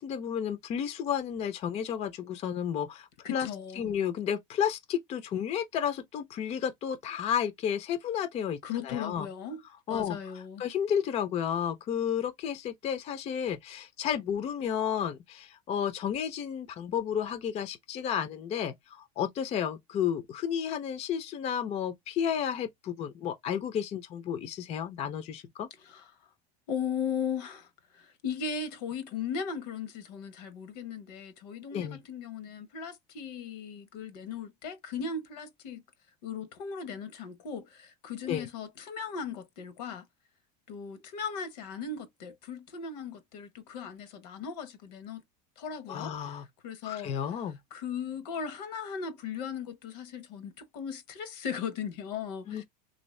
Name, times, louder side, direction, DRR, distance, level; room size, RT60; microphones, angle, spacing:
voice 1, 0.0-3.5 3.8-8.6 8.8-9.3 9.9-25.7 31.7-32.0 38.3-38.5 45.9-46.4 46.8-47.6 52.5-52.6, left 8 dB, 30° left, 0.5 m, -32 dB
voice 2, 3.2-3.9 8.6-9.6 9.9-10.6 25.8-26.1 26.7-35.8 36.2-40.1 40.7-45.2 45.6-47.4 47.7-52.6, left 6 dB, 75° left, 0.9 m, -37 dB
3.0 x 2.7 x 3.1 m
supercardioid pair, 120°, 21 cm